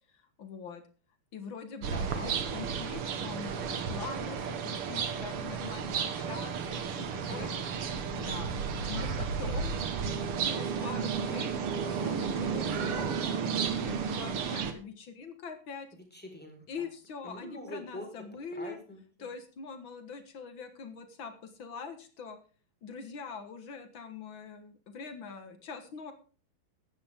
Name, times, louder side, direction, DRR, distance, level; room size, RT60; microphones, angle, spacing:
voice 1, 0.1-0.8 1.3-7.5 8.2-8.5 8.9-9.8 10.4-11.5 11.8-15.9 16.7-18.8 19.2-22.4 22.8-26.1, left 5 dB, 75° left, 8 dB, 1.1 m, -43 dB
sound 1, 1.8-14.7, right 6 dB, 60° right, 1.5 m, -33 dB
voice 2, 1.9-2.3 7.2-8.0 16.1-16.9 17.2-18.1 18.5-19.3, left 1 dB, ahead, 2 dB, 4.2 m, -44 dB
17.0 x 11.5 x 3.6 m, 0.38 s
omnidirectional pair, 4.5 m